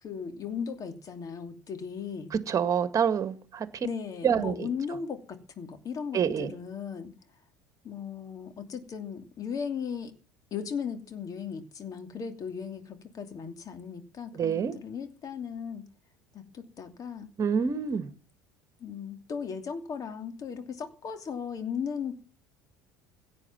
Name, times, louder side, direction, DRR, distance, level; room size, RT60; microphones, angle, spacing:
voice 1, 0.0-2.3 3.8-7.1 7.8-10.1 10.5-15.8 16.3-17.3 18.8-22.1, left 6 dB, 35° left, 2.7 m, -37 dB
voice 2, 2.3-3.7 4.2-4.7 6.1-6.5 14.3-14.7 17.4-18.1, right 7 dB, 35° right, 1.8 m, -27 dB
16.5 x 8.7 x 7.3 m
figure-of-eight pair, 65°, 10 cm